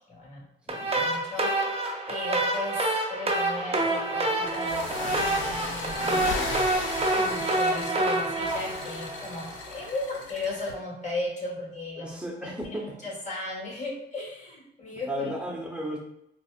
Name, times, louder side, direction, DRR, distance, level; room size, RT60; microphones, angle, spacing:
voice 1, 0.1-15.3, left 2 dB, 40° left, -2 dB, 1.5 m, -37 dB
voice 2, 0.7-1.1 12.0-13.0 14.9-16.0, equal, 5° right, -1 dB, 0.9 m, -34 dB
sound 1, 0.7-9.8, right 2 dB, 30° right, 0.6 m, -27 dB
sound 2, 4.4-10.7, left 3 dB, 85° left, 0.5 m, -36 dB
4.2 x 2.0 x 2.4 m, 0.78 s
cardioid pair, 75°, 19 cm